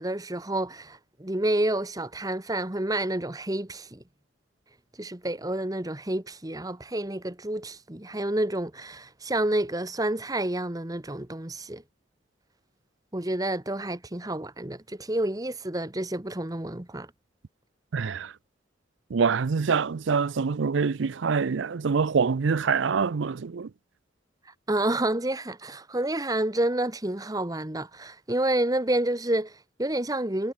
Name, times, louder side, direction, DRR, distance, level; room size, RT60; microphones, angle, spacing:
voice 1, 0.0-4.0 5.0-11.8 13.1-17.1 24.7-30.5, right 1 dB, 20° right, 1.2 m, -29 dB
voice 2, 17.9-18.3 19.1-23.7, right 5 dB, 75° right, 0.5 m, -25 dB
head